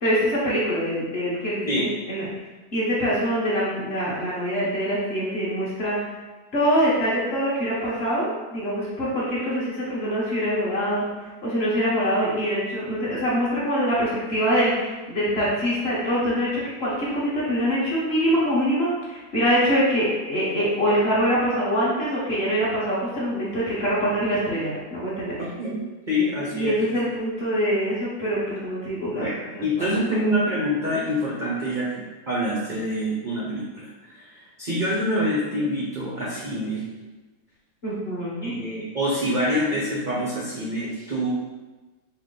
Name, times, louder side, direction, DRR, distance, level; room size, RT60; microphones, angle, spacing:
voice 1, 0.0-2.3 2.7-6.0 6.5-25.4 26.5-29.3 29.5-30.0 37.8-38.5, equal, 35° left, -7 dB, 1.2 m, -24 dB
voice 2, 25.4-25.8 26.1-26.8 29.2-31.9 32.3-36.8 38.4-41.3, equal, 65° right, -6 dB, 0.4 m, -26 dB
4.5 x 2.9 x 3.8 m, 1.2 s
omnidirectional pair, 2.1 m